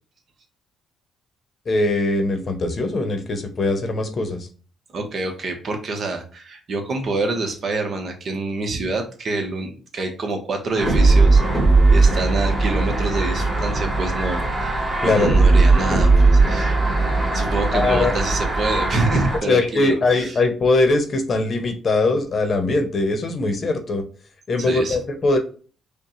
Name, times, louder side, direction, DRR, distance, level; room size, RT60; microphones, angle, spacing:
voice 1, 1.7-4.5 15.0-15.4 17.7-18.2 19.5-24.0 24.5-25.4, left 2 dB, 45° left, 6 dB, 0.8 m, -21 dB
voice 2, 4.9-11.6 11.9-16.8 17.3-20.3 24.6-25.0, right 2 dB, 50° right, 4 dB, 0.9 m, -26 dB
sound 1, 10.8-19.4, right 3 dB, 20° right, 1.5 m, -18 dB
5.1 x 2.2 x 3.0 m, 0.38 s
cardioid pair, 90°, 0 cm